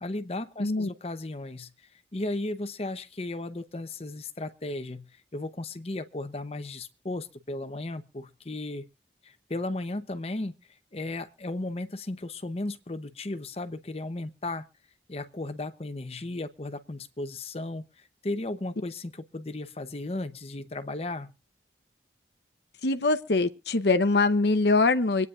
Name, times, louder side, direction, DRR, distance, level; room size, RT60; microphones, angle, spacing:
voice 1, 0.0-5.1 5.3-8.8 9.2-10.5 10.9-14.7 15.1-21.3, left 2 dB, 35° left, 0.8 m, -35 dB
voice 2, 0.6-0.9 22.8-25.3, left 3 dB, 70° left, 0.8 m, -23 dB
25.0 x 9.5 x 2.4 m
head